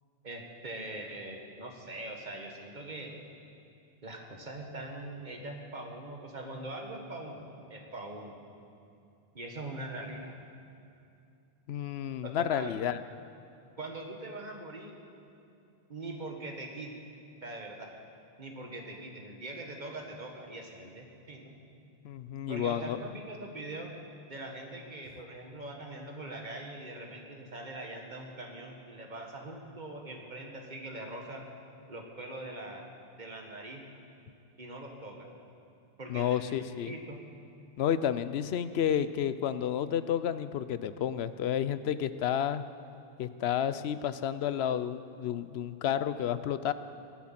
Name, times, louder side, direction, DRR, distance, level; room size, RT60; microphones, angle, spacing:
voice 1, 0.2-3.1 4.0-8.3 9.3-10.4 12.2-12.7 13.8-15.0 15.9-16.9 17.4-17.9 18.4-21.6 22.5-23.9 24.3-31.4 31.9-32.9 33.2-33.8 34.6-35.3 36.0-37.2, right 2 dB, 45° right, 1 dB, 1.8 m, -42 dB
voice 2, 11.7-13.0 22.0-23.0 36.1-36.9 37.8-42.6 43.2-46.7, left 9 dB, 85° left, 13 dB, 0.9 m, -31 dB
18.5 x 10.0 x 5.9 m, 2.6 s
omnidirectional pair, 1.0 m